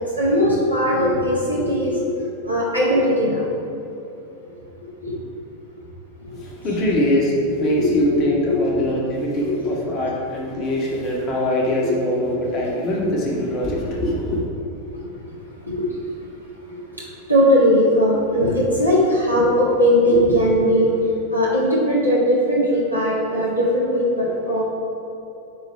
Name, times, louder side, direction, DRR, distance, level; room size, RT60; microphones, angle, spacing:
voice 1, 0.0-3.5 4.5-4.6 5.0-5.1 6.2-6.4 7.7-8.9 9.4-9.8 10.1-10.2 11.8-12.6 14.9-15.3 15.6-16.0 16.7-17.0 17.3-21.0 21.3-24.6, equal, 85° left, -6 dB, 1.6 m, -20 dB
voice 2, 6.4-14.4, left 1 dB, 35° left, -3 dB, 1.4 m, -22 dB
9.1 x 3.1 x 5.4 m, 2.9 s
figure-of-eight pair, 90°, 0 cm